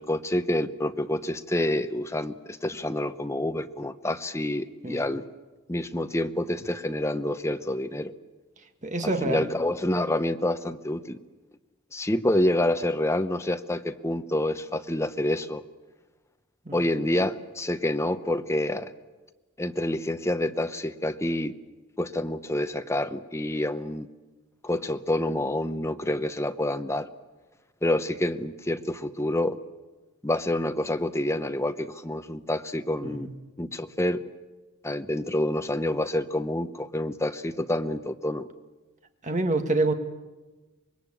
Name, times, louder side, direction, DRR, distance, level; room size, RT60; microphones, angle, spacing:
voice 1, 0.0-5.2 5.7-8.1 9.0-11.2 11.9-15.6 16.7-18.9 19.6-21.5 22.0-24.1 24.6-27.1 27.8-29.6 30.2-33.3 33.6-34.2 34.8-38.5, left 1 dB, 15° left, 9 dB, 0.9 m, -28 dB
voice 2, 8.8-9.5 16.7-16.8 33.0-33.3 39.2-39.9, right 2 dB, 40° right, 6 dB, 1.9 m, -26 dB
25.5 x 21.5 x 8.7 m, 1.2 s
head